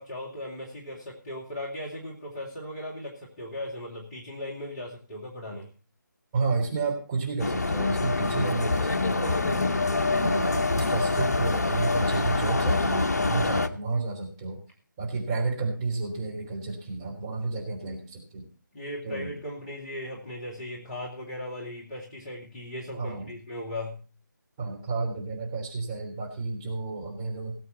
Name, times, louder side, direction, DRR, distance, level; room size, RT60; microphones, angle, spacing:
voice 1, 0.0-5.7 18.7-24.0, left 1 dB, 20° left, -3 dB, 2.6 m, -37 dB
voice 2, 6.3-9.7 10.2-14.6 15.0-18.5 19.0-19.4 22.9-23.3 24.6-27.6, right 3 dB, 15° right, -2 dB, 3.3 m, -31 dB
sound 1, 7.4-13.7, left 3 dB, 50° left, 1.0 m, -25 dB
18.5 x 8.5 x 4.2 m, 0.36 s
figure-of-eight pair, 155°, 11 cm